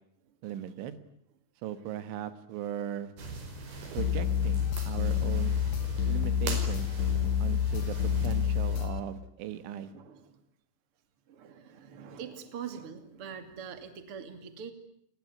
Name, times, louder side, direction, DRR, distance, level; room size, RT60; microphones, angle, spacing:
voice 1, 0.4-1.0 1.6-3.1 3.9-5.6 6.1-6.9 7.4-9.9, right 11 dB, 85° right, 12 dB, 3.9 m, -38 dB
sound 1, 3.2-8.8, right 3 dB, 55° right, 6.5 m, -41 dB
sound 2, 4.0-9.0, left 8 dB, 65° left, 2.5 m, -28 dB
voice 2, 9.9-10.4 11.3-14.7, right 7 dB, 35° right, 8 dB, 2.7 m, -43 dB
29.5 x 20.5 x 9.6 m, 0.71 s
omnidirectional pair, 5.3 m